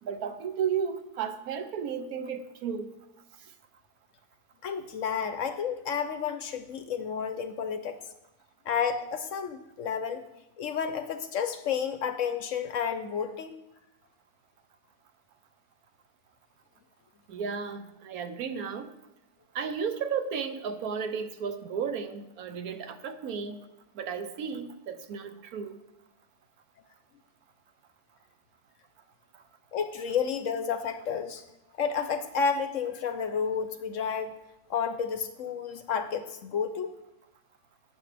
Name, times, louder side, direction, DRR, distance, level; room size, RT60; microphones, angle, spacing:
voice 1, 0.0-2.9 17.3-18.9 19.5-23.6 23.9-25.8, right 6 dB, 70° right, 9 dB, 1.2 m, -33 dB
voice 2, 4.6-8.0 8.7-10.2 10.6-13.5 29.7-31.4 31.8-34.4 34.7-36.9, left 6 dB, 65° left, 9 dB, 0.9 m, -31 dB
16.0 x 7.2 x 3.4 m, 0.89 s
omnidirectional pair, 1.6 m